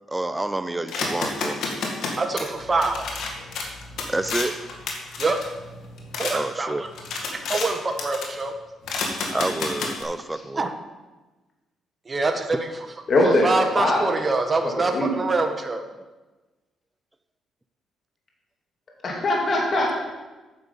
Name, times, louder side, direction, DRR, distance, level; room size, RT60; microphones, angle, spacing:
voice 1, 0.1-1.6 4.1-4.5 6.3-6.8 9.3-10.7, right 2 dB, 15° right, 11 dB, 0.6 m, -28 dB
sound 1, 0.9-6.4 6.8-7.7 8.0-8.4 8.9-10.0, left 3 dB, 75° left, 1.8 m, -31 dB
voice 2, 2.2-3.0 5.2-5.4 6.2-6.7 7.3-8.5 10.6-10.7 12.1-12.7 13.4-15.8, right 3 dB, 30° right, 5 dB, 1.3 m, -24 dB
voice 3, 13.1-14.2 14.8-15.1 19.0-19.9, left 1 dB, 45° left, -1 dB, 2.7 m, -21 dB
9.7 x 6.9 x 5.6 m, 1.2 s
cardioid pair, 90°, 0 cm